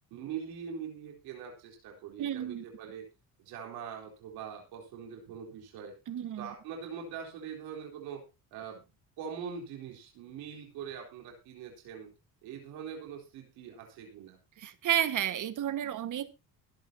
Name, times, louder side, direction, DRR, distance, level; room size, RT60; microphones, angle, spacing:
voice 1, 0.1-3.1 3.4-5.9 6.4-8.2 8.5-8.8 9.2-12.1 12.4-14.4, right 7 dB, 90° right, 1 dB, 3.9 m, -42 dB
voice 2, 2.2-2.6 6.1-6.5 14.6-16.3, right 10 dB, 55° right, 12 dB, 1.6 m, -31 dB
23.5 x 8.5 x 2.8 m, 0.27 s
cardioid pair, 100°, 36 cm